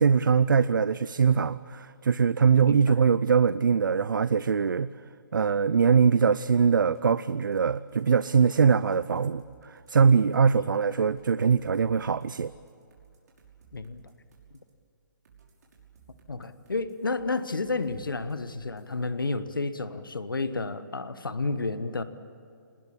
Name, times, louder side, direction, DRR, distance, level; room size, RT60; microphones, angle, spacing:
voice 1, 0.0-4.9 5.3-12.5, right 6 dB, 70° right, 16 dB, 0.6 m, -22 dB
voice 2, 2.6-3.0 10.5-10.7 13.7-14.0 16.3-22.0, left 3 dB, 85° left, 12 dB, 1.4 m, -31 dB
sound 1, 6.9-10.5 11.0-14.7 15.2-19.0, right 7 dB, 55° right, 6.0 m, -58 dB
26.5 x 20.0 x 8.6 m, 2.5 s
figure-of-eight pair, 135°, 11 cm